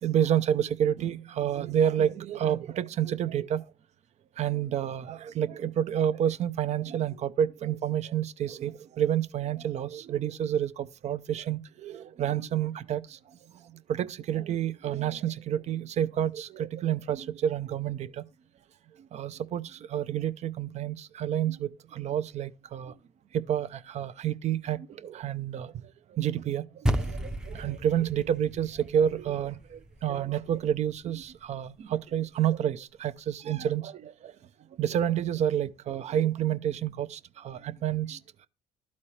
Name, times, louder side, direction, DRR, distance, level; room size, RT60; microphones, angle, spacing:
voice 1, 0.0-3.6 4.4-13.2 13.9-18.2 19.1-23.0 23.3-25.8 26.1-34.3 34.8-38.5, right 10 dB, 55° right, 0.5 m, -29 dB
sound 1, 26.9-31.4, right 1 dB, 5° right, 0.6 m, -34 dB
12.0 x 4.2 x 3.2 m
supercardioid pair, 80°, 14 cm